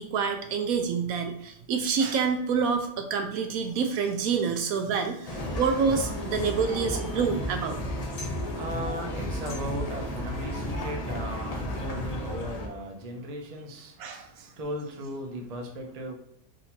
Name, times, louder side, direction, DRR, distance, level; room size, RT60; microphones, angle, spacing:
voice 1, 0.0-7.8 14.0-14.5, right 5 dB, 70° right, 5 dB, 1.0 m, -27 dB
sound 1, 5.3-12.7, equal, 70° left, 0.3 m, -33 dB
voice 2, 8.1-16.1, equal, 40° right, 1 dB, 0.5 m, -37 dB
3.8 x 2.7 x 4.3 m, 0.75 s
omnidirectional pair, 1.6 m